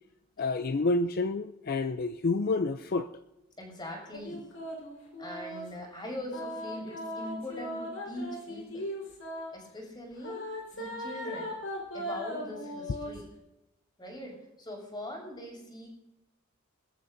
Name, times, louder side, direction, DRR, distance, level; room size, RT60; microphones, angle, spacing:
voice 1, 0.4-3.1, left 3 dB, 45° left, 0.5 m, -29 dB
voice 2, 3.6-4.5 5.2-8.9 9.5-11.5 11.9-13.3 14.0-15.9, left 1 dB, 20° left, 6.3 m, -42 dB
sound 1, 4.1-5.7 6.3-9.5 10.2-13.2, equal, 80° left, 4.5 m, -38 dB
26.5 x 14.0 x 2.7 m
head